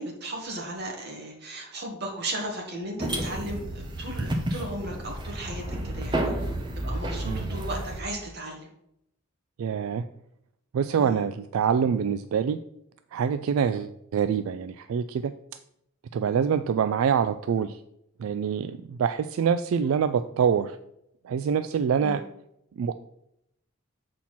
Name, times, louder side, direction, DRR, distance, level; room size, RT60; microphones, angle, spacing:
voice 1, 0.0-6.3 6.8-8.7 11.0-11.2 22.0-22.2, right 1 dB, 50° right, 0 dB, 1.8 m, -36 dB
sound 1, 3.0-8.0, right 1 dB, 20° right, 0.9 m, -31 dB
voice 2, 9.6-10.0 10.7-12.6 13.1-15.3 16.1-17.8 18.2-20.7 21.3-22.2 22.8-22.9, right 7 dB, 80° right, 11 dB, 0.3 m, -25 dB
7.3 x 4.3 x 5.8 m, 0.79 s
head